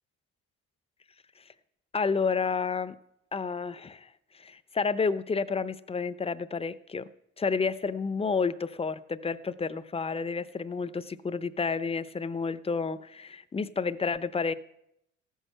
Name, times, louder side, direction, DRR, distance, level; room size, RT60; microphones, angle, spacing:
voice 1, 1.9-3.0 3.3-4.1 4.4-7.1 7.4-14.5, left 5 dB, 20° left, 14 dB, 0.6 m, -30 dB
15.0 x 6.4 x 6.6 m, 0.80 s
cardioid pair, 90°, 30 cm